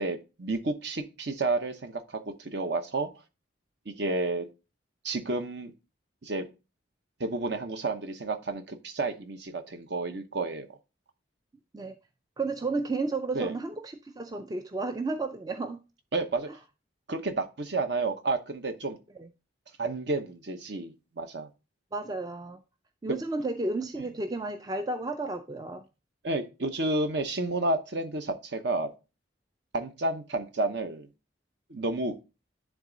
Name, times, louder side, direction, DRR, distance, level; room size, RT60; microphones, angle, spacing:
voice 1, 0.0-3.1 3.9-4.5 5.0-5.7 6.2-6.4 7.2-10.7 13.3-13.5 16.1-16.5 17.1-19.0 19.8-21.5 26.2-28.9 29.7-31.1 31.7-32.1, right 2 dB, 55° right, 0.9 m, -31 dB
voice 2, 12.4-15.8 19.2-19.3 21.9-22.6 23.0-25.8, right 3 dB, 20° right, 0.3 m, -32 dB
10.5 x 3.6 x 3.9 m
head